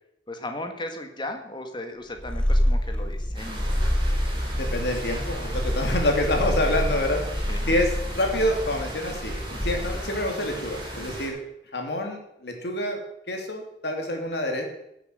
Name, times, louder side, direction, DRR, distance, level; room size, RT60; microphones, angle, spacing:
voice 1, 0.3-3.7 5.8-6.0 7.5-7.8, left 1 dB, 25° left, 5 dB, 1.8 m, -36 dB
Purr, 2.2-10.3, equal, 5° left, 0.4 m, -27 dB
sound 1, 3.3-11.3, right 1 dB, 30° right, 5.0 m, -36 dB
voice 2, 4.5-7.3 7.7-11.4 11.7-13.0 13.3-14.7, left 1 dB, 70° left, 3 dB, 2.9 m, -27 dB
16.0 x 8.1 x 6.6 m, 0.80 s
head